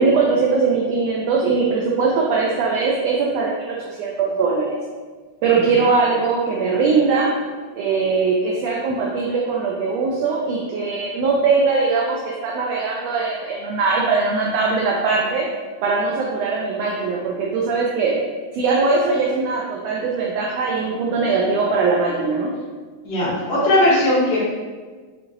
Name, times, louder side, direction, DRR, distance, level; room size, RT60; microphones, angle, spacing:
voice 1, 0.0-4.7 5.4-7.3 7.7-15.5 15.8-18.2 18.5-22.6, right 4 dB, 85° right, -2 dB, 1.4 m, -20 dB
voice 2, 5.5-5.8 23.0-24.4, left 1 dB, 70° left, -7 dB, 2.3 m, -19 dB
5.5 x 2.9 x 2.6 m, 1.4 s
omnidirectional pair, 3.4 m